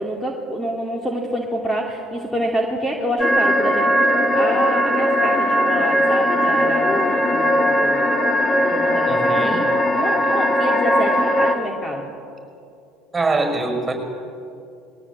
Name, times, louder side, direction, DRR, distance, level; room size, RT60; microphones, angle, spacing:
voice 1, 0.0-8.3 8.6-9.6 9.9-12.1, equal, 5° left, 0 dB, 2.5 m, -27 dB
sound 1, 3.2-11.5, equal, 25° left, 2.5 m, -19 dB
voice 2, 9.1-9.6 13.1-13.9, right 3 dB, 15° right, 4 dB, 5.7 m, -23 dB
21.5 x 17.5 x 8.6 m, 2.6 s
supercardioid pair, 100°, 0 cm